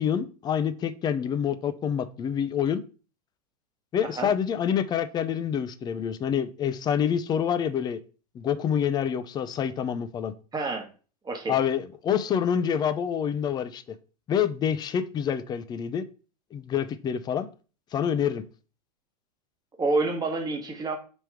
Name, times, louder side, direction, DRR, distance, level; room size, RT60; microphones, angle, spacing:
voice 1, 0.0-2.8 3.9-8.0 8.3-10.3 11.5-14.0 14.3-16.0 16.5-17.5 17.9-18.4, left 8 dB, 20° left, 0.4 m, -27 dB
voice 2, 10.5-10.9 11.2-11.5 19.8-21.0, right 2 dB, 20° right, 1.2 m, -28 dB
3.4 x 3.0 x 4.6 m
hypercardioid pair, 105°, 21 cm